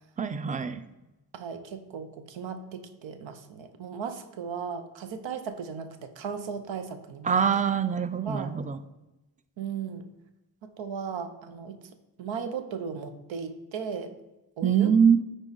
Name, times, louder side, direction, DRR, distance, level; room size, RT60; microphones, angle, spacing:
voice 1, 0.2-0.8 7.2-8.8 14.6-15.2, right 7 dB, 20° right, 12 dB, 0.5 m, -23 dB
voice 2, 1.3-7.3 8.2-8.6 9.6-10.0 10.8-11.8 12.2-14.1 14.6-14.9, right 6 dB, 90° right, 9 dB, 0.7 m, -36 dB
9.6 x 3.8 x 4.0 m, 0.98 s
cardioid pair, 45°, 44 cm